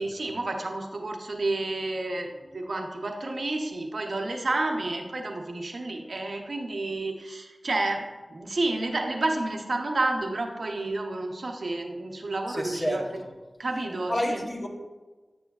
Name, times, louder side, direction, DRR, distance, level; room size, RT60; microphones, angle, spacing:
voice 1, 0.0-8.0 8.3-13.0 13.6-14.4, right 2 dB, 85° right, 2 dB, 0.8 m, -30 dB
voice 2, 12.5-13.3 14.1-14.7, equal, 50° left, 0 dB, 0.9 m, -29 dB
8.5 x 6.2 x 2.3 m, 1.3 s
wide cardioid pair, 70°, 0 cm